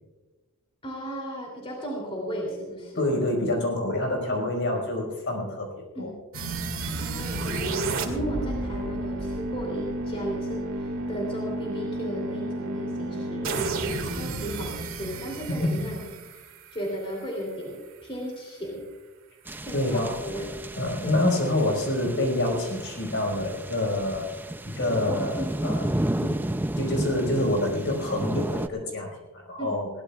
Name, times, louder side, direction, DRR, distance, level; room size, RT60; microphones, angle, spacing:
voice 1, 0.8-3.1 4.3-4.4 5.9-6.1 7.0-16.0 16.3-16.5 16.7-18.8 19.6-20.5 21.0-21.1 25.4-25.6 29.6-29.7, equal, 25° left, -1 dB, 3.0 m, -35 dB
voice 2, 2.9-6.1 14.2-14.4 19.7-20.1 20.8-24.3 24.6-25.9 26.2-26.4 26.8-29.1 29.3-29.9, left 1 dB, 55° left, 1 dB, 4.9 m, -27 dB
sound 1, 6.3-17.3, right 2 dB, 65° right, 2.1 m, -31 dB
sound 2, 19.5-28.7, right 1 dB, 10° right, 0.4 m, -32 dB
22.0 x 17.0 x 2.4 m, 1.2 s
head